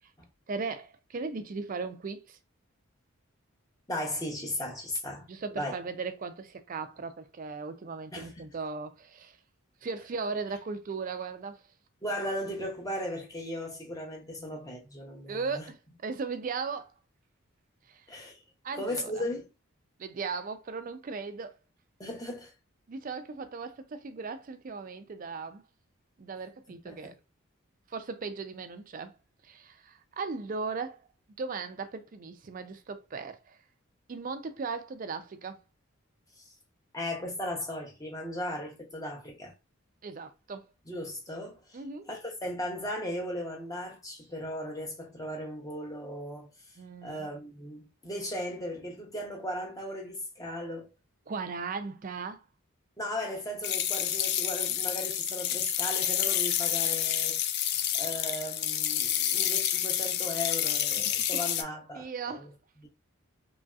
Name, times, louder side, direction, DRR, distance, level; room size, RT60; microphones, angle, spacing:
voice 1, 0.5-2.4 5.3-9.4 9.8-11.6 15.3-16.9 17.9-18.1 18.6-19.3 20.0-21.6 22.9-25.6 26.2-27.1 27.9-29.1 29.4-31.0 31.4-33.6 34.1-35.6 40.0-40.7 41.7-42.1 46.8-47.3 51.3-52.4 57.7-57.9 61.0-61.4 61.9-62.5, right 4 dB, 40° right, 0.4 m, -37 dB
voice 2, 3.9-5.3 5.5-5.8 8.1-8.4 12.0-15.7 18.1-18.4 18.8-19.5 22.0-22.5 26.7-27.1 36.4-36.5 36.9-39.5 40.9-41.8 42.1-46.5 47.0-50.9 53.0-57.4 57.9-62.5 62.8-62.9, left 1 dB, 15° left, 0.7 m, -37 dB
sound 1, 53.6-61.6, left 10 dB, 50° left, 0.3 m, -29 dB
3.0 x 2.7 x 2.3 m
head